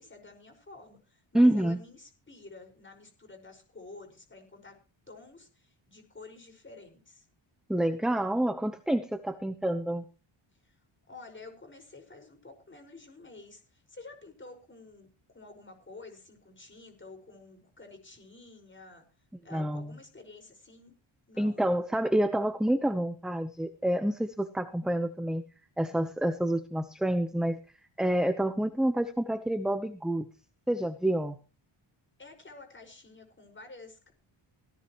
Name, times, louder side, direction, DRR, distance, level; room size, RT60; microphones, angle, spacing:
voice 1, 0.0-4.8 5.1-7.3 10.6-10.8 11.1-19.0 19.4-20.9 21.3-21.7 32.2-34.1, left 3 dB, 25° left, 5 dB, 5.4 m, -50 dB
voice 2, 1.3-1.8 7.7-10.0 19.5-19.9 21.4-25.4 25.8-27.6 28.0-30.3 30.7-31.4, right 1 dB, ahead, 9 dB, 0.9 m, -28 dB
17.5 x 15.5 x 3.1 m, 0.34 s
wide cardioid pair, 150°, 49 cm